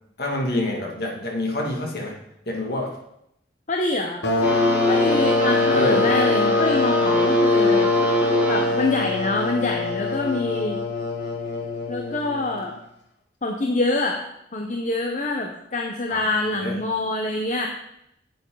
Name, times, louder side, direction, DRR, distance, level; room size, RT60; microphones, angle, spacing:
voice 1, 0.2-2.2 2.5-3.0 5.7-6.1 16.1-16.2 16.5-16.7, left 1 dB, 60° left, -1 dB, 2.2 m, -26 dB
voice 2, 3.7-4.2 4.9-7.9 8.5-10.8 11.9-12.7 13.4-14.2 14.5-17.7, left 2 dB, 40° left, 2 dB, 0.8 m, -25 dB
sound 1, 4.2-12.6, left 3 dB, 75° left, 1.6 m, -23 dB
sound 2, 4.4-9.0, equal, 10° right, 1.1 m, -24 dB
9.5 x 7.8 x 3.9 m, 0.79 s
head